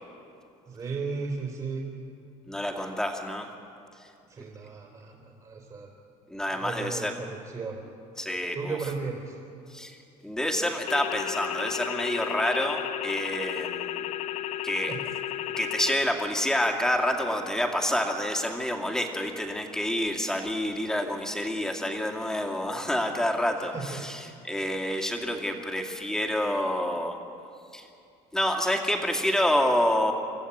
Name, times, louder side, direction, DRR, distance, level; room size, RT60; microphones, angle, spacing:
voice 1, 0.7-1.8 4.3-5.9 6.5-7.8 8.5-9.4 14.9-15.0 23.6-24.1, right 4 dB, 30° right, -1 dB, 3.5 m, -35 dB
voice 2, 2.5-3.5 4.0-4.1 6.3-7.1 8.2-8.8 9.7-14.1 14.6-15.0 15.6-27.2 27.7-27.9 28.3-30.1, left 1 dB, 5° left, 1 dB, 2.4 m, -28 dB
sound 1, 10.9-15.9, left 12 dB, 55° left, 0.7 m, -33 dB
25.5 x 14.5 x 9.9 m, 2.6 s
cardioid pair, 130°, 14 cm